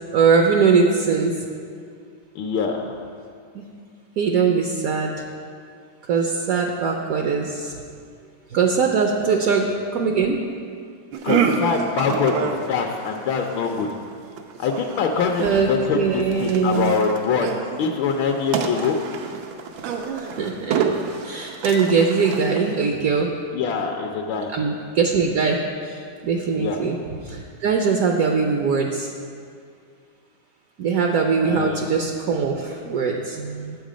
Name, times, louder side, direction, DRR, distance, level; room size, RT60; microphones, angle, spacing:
voice 1, 0.1-1.3 3.5-3.6 4.2-5.1 6.0-7.8 8.5-9.7 9.9-10.4 15.4-15.7 15.9-16.9 20.2-20.8 21.2-23.3 24.5-27.0 27.2-29.1 30.8-33.8, right 5 dB, 65° right, 2 dB, 0.9 m, -21 dB
voice 2, 2.3-3.0 11.2-13.9 14.6-17.5 17.8-19.0 23.5-24.5 26.6-26.8 31.4-31.8, left 5 dB, 80° left, 3 dB, 1.4 m, -24 dB
sound 1, 11.1-23.1, right 6 dB, 85° right, 1.5 m, -28 dB
9.4 x 7.4 x 5.0 m, 2.2 s
omnidirectional pair, 2.1 m